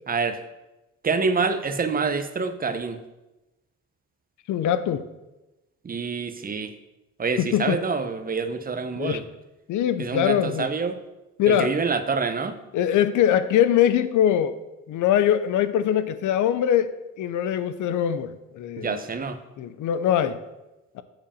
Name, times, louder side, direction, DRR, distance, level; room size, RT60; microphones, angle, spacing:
voice 1, 0.1-0.4 1.0-3.0 5.8-6.7 7.2-9.2 10.0-11.0 11.5-12.5 18.8-19.4, right 4 dB, 30° right, 8 dB, 0.9 m, -26 dB
voice 2, 4.5-5.1 7.4-7.8 9.0-9.2 9.7-10.7 11.4-11.8 12.7-14.5 14.9-19.0 19.6-20.4 21.0-21.1, left 10 dB, 80° left, 13 dB, 0.7 m, -22 dB
7.5 x 4.9 x 6.9 m, 1.0 s
cardioid pair, 90°, 30 cm